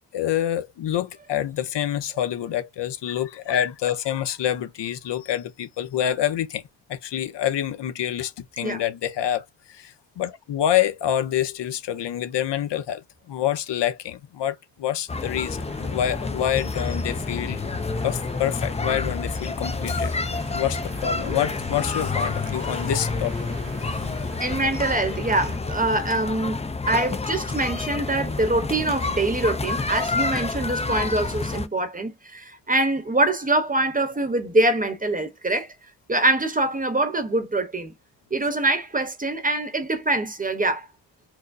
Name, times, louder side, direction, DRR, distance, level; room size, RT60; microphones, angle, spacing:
voice 1, 0.1-6.6 6.9-17.6 18.0-20.2 20.5-23.3 23.9-24.1, left 11 dB, 75° left, 0.7 m, -27 dB
sound 1, 15.1-31.7, left 3 dB, 15° left, 0.4 m, -29 dB
sound 2, 15.6-25.6, right 4 dB, 85° right, 1.5 m, -45 dB
voice 2, 24.4-35.7 36.1-37.9 38.3-40.9, right 2 dB, 20° right, 0.9 m, -24 dB
4.7 x 2.0 x 2.6 m
cardioid pair, 100°, 42 cm